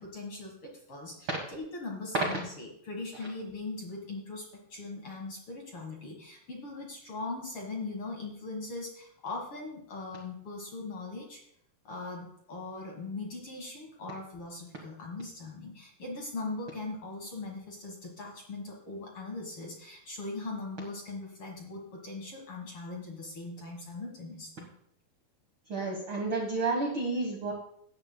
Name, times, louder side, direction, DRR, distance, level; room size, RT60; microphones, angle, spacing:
voice 1, 0.0-11.4 11.8-24.7, left 3 dB, 50° left, 0 dB, 1.8 m, -40 dB
voice 2, 25.7-27.5, right 3 dB, 80° right, 0 dB, 1.1 m, -30 dB
16.5 x 11.5 x 2.2 m, 0.71 s
omnidirectional pair, 4.4 m